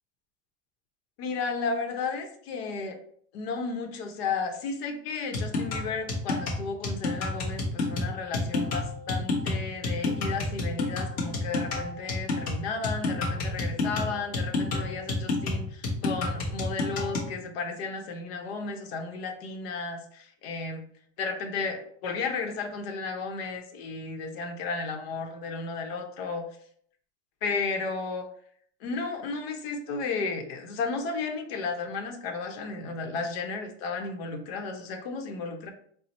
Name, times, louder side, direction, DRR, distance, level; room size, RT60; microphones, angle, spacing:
voice 1, 1.2-3.0 3.3-20.8 21.2-26.5 27.4-28.3 28.8-35.7, left 4 dB, 80° left, 4 dB, 0.8 m, -33 dB
sound 1, 5.3-17.3, left 2 dB, 30° left, 0.8 m, -29 dB
4.3 x 2.0 x 4.1 m, 0.62 s
cardioid pair, 180°, 30 cm